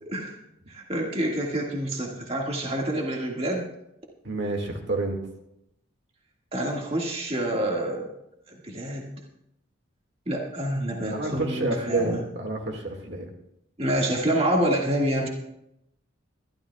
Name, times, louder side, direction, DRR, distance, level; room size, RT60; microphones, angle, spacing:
voice 1, 0.0-0.4 0.7-3.7 6.5-8.1 8.5-9.1 10.3-12.2 13.8-15.3, right 1 dB, 30° right, -1 dB, 1.9 m, -27 dB
voice 2, 4.2-5.2 11.1-13.3, right 2 dB, 55° right, 2 dB, 2.0 m, -29 dB
21.5 x 12.5 x 2.3 m, 0.80 s
head